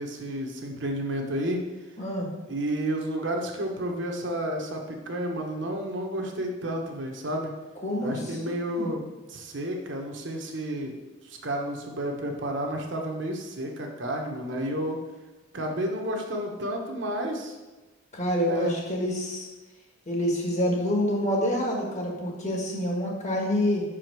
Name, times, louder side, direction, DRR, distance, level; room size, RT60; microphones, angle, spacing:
voice 1, 0.0-1.6 2.5-7.5 8.0-11.0 11.2-15.0 15.5-17.5 18.4-18.7, right 1 dB, 60° right, 2 dB, 1.2 m, -31 dB
voice 2, 2.0-2.3 7.8-9.0 18.1-19.5 20.1-23.8, left 1 dB, 35° left, -1 dB, 1.6 m, -27 dB
5.7 x 5.0 x 6.0 m, 1.2 s
head